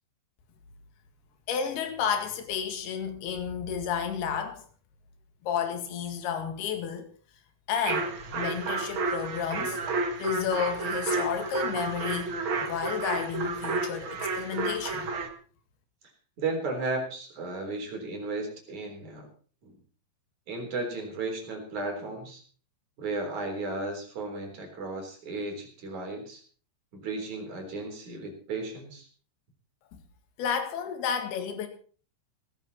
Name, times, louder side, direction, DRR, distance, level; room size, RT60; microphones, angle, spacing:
voice 1, 1.5-4.6 5.4-7.1 7.7-9.8 10.2-12.3 12.6-15.1 30.4-31.7, left 7 dB, 65° left, 3.8 m, -31 dB
sound 1, 7.8-15.3, right 3 dB, 70° right, 1.2 m, -31 dB
voice 2, 16.4-19.3 19.6-19.8 20.5-22.4 23.0-26.4 26.9-29.1, right 3 dB, 45° right, 4.9 m, -34 dB
17.0 x 14.0 x 4.2 m
omnidirectional pair, 5.1 m